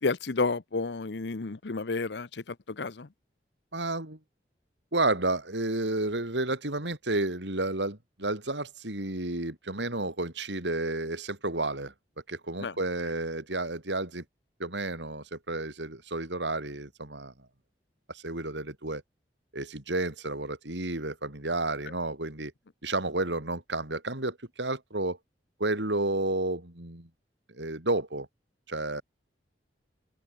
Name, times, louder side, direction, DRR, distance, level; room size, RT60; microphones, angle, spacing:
voice 1, 0.0-2.3 2.8-3.1 12.6-12.7, left 3 dB, 75° left, 0.8 m, -30 dB
voice 2, 3.7-4.2 4.9-11.9 12.3-14.2 14.6-17.3 18.1-19.0 19.5-22.5 22.8-25.2 25.6-27.1 27.5-28.3 28.7-29.0, right 2 dB, 85° right, 4.4 m, -31 dB
open air
head